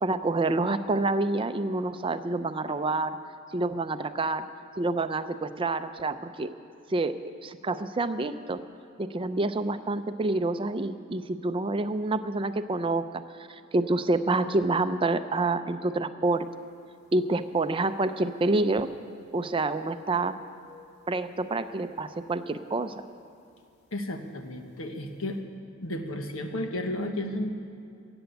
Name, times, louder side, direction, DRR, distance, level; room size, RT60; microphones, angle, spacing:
voice 1, 0.0-3.2 3.5-4.5 4.8-6.5 6.9-7.2 7.4-8.6 9.0-13.0 13.5-16.5 17.1-18.9 19.3-20.3 21.1-23.0, right 2 dB, 25° right, 11 dB, 0.5 m, -27 dB
sound 1, 16.4-16.5 16.8-18.1 18.4-19.3 19.5-21.7 22.1-22.3 22.9-23.2 24.3-24.4 24.7-24.8, left 6 dB, 60° left, 2.0 m, -51 dB
voice 2, 23.9-25.4 25.8-27.5, left 1 dB, 85° left, 5 dB, 1.3 m, -33 dB
15.0 x 7.9 x 9.3 m, 2.5 s
head